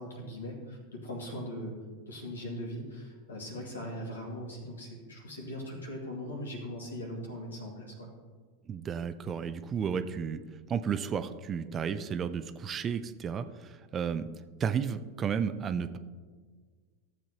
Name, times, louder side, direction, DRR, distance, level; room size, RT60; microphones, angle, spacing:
voice 1, 0.0-1.7 2.1-8.1, equal, 85° left, -1 dB, 2.4 m, -40 dB
voice 2, 8.7-10.4 10.7-14.3 14.6-16.0, right 7 dB, 30° right, 11 dB, 0.5 m, -33 dB
14.0 x 7.4 x 2.9 m, 1.5 s
hypercardioid pair, 90°, 0 cm